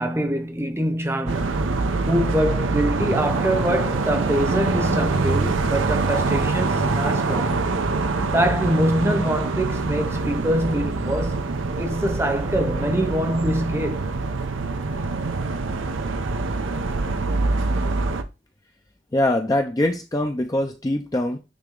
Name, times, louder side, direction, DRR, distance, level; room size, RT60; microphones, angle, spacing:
voice 1, 0.0-1.6 2.1-7.7 8.3-11.5 11.8-14.1, equal, 15° right, 0.8 m, -24 dB
sound 1, 1.3-18.2, right 3 dB, 90° right, 0.7 m, -24 dB
voice 2, 19.1-21.4, left 1 dB, 20° left, 0.5 m, -23 dB
8.9 x 3.0 x 3.8 m
head